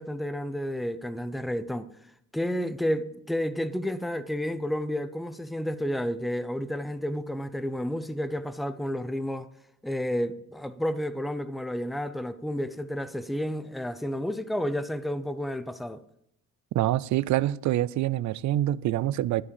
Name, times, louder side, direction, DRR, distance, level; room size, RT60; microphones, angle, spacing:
voice 1, 0.0-1.9 2.3-9.5 9.8-16.0, equal, ahead, 0.6 m, -31 dB
voice 2, 16.7-19.4, right 14 dB, 70° right, 0.5 m, -26 dB
12.5 x 4.8 x 8.6 m
cardioid pair, 90°, 30 cm